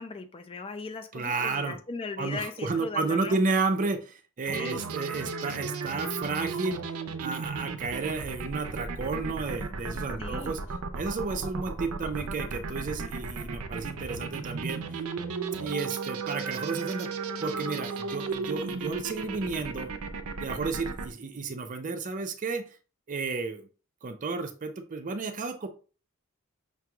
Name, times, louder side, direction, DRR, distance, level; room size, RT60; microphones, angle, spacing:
voice 1, 0.0-3.4 4.5-4.8 10.2-10.6, left 4 dB, 25° left, 8 dB, 0.4 m, -38 dB
voice 2, 1.1-1.8 2.2-6.8 7.2-10.6 10.9-15.0 15.5-17.1 17.4-19.9 20.4-22.7 23.1-23.7 24.0-25.7, right 4 dB, 35° right, 7 dB, 0.5 m, -32 dB
sound 1, 4.5-21.1, right 4 dB, 85° right, 0.5 m, -35 dB
5.8 x 3.0 x 2.3 m, 0.36 s
head